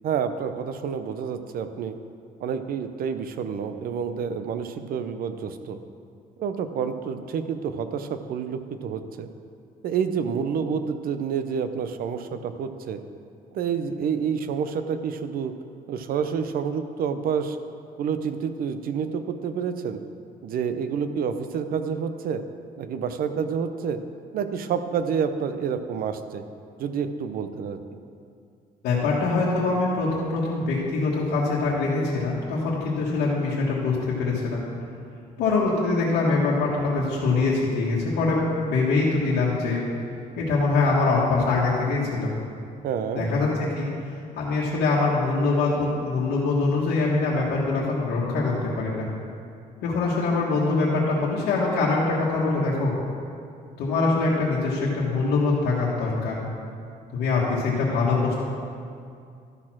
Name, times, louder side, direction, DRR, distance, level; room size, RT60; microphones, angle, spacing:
voice 1, 0.0-2.0 2.4-5.8 6.4-9.3 9.8-13.0 13.5-15.5 15.9-17.6 18.0-20.0 20.4-22.4 22.8-24.0 24.3-26.4 26.8-27.8 42.8-43.3, right 7 dB, 65° right, 9 dB, 0.6 m, -28 dB
voice 2, 28.8-34.6 35.4-39.8 40.4-42.3 43.1-43.9 44.3-49.1 49.8-52.9 53.8-56.4 57.1-58.4, left 3 dB, 90° left, -7 dB, 1.4 m, -23 dB
12.0 x 4.3 x 6.0 m, 2.4 s
cardioid pair, 120°, 16 cm